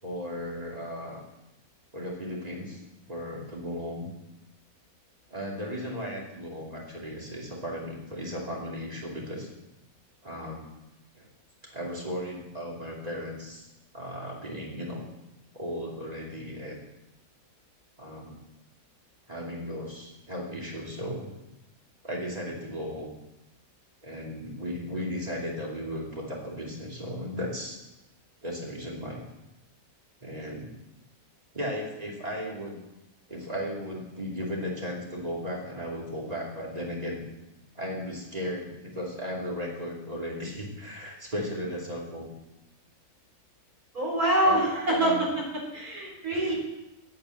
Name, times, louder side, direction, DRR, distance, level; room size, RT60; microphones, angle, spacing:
voice 1, 0.0-1.2 1.9-2.8 3.1-4.1 5.3-9.5 10.2-10.6 11.2-11.3 11.6-13.7 13.9-15.0 15.5-16.8 18.0-18.4 19.3-21.3 22.0-23.1 24.0-27.8 28.4-29.2 30.2-30.7 31.5-32.8 33.3-37.3 37.7-42.3 44.4-45.3 46.3-46.5, equal, 25° right, -3 dB, 2.8 m, -36 dB
voice 2, 43.9-46.5, right 1 dB, 75° right, -2 dB, 4.3 m, -25 dB
9.1 x 8.6 x 7.8 m, 0.94 s
omnidirectional pair, 1.6 m